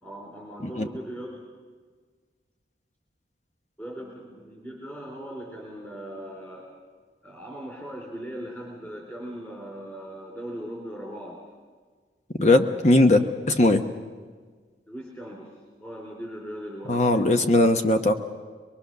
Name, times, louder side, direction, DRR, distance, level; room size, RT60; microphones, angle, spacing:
voice 1, 0.0-1.3 3.8-6.7 7.2-11.4 14.9-15.5 15.8-17.4, equal, 10° left, -2 dB, 3.6 m, -39 dB
voice 2, 12.4-13.8 16.9-18.1, left 2 dB, 35° left, 7 dB, 1.0 m, -19 dB
23.0 x 23.0 x 6.7 m, 1.5 s
head